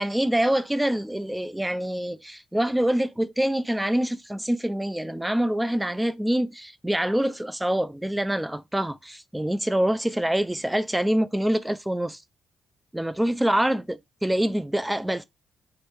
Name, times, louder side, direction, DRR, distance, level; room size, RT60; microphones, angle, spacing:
voice 1, 0.0-12.2 12.9-15.2, right 1 dB, 10° right, 0.4 m, -25 dB
3.0 x 2.6 x 3.4 m
supercardioid pair, 60°, 0 cm